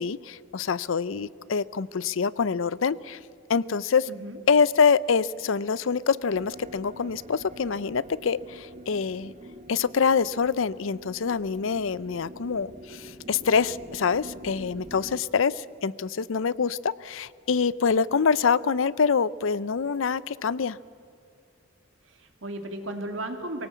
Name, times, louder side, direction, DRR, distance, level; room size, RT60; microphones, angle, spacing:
voice 1, 0.0-3.2 3.5-4.1 4.5-9.3 9.7-20.8, left 5 dB, 75° left, 19 dB, 0.5 m, -25 dB
voice 2, 4.1-4.4 22.0-23.7, right 1 dB, 70° right, 6 dB, 2.5 m, -35 dB
sound 1, 6.3-15.2, right 1 dB, 35° right, 1.0 m, -45 dB
23.5 x 18.0 x 8.3 m, 2.4 s
head